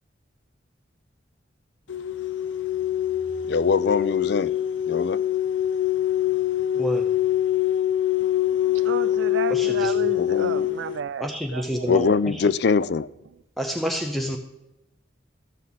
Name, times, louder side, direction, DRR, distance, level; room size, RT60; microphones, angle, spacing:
sound 1, 1.9-11.0, left 11 dB, 80° left, 0.7 m, -24 dB
voice 1, 3.5-4.5 4.9-5.2 10.1-10.7 11.9-13.1, left 5 dB, 60° left, 0.4 m, -23 dB
voice 2, 6.7-7.1 9.5-9.9 11.2-12.5 13.6-14.4, equal, ahead, 0.6 m, -29 dB
voice 3, 8.5-12.2, right 7 dB, 75° right, 0.4 m, -33 dB
14.0 x 7.5 x 4.0 m
head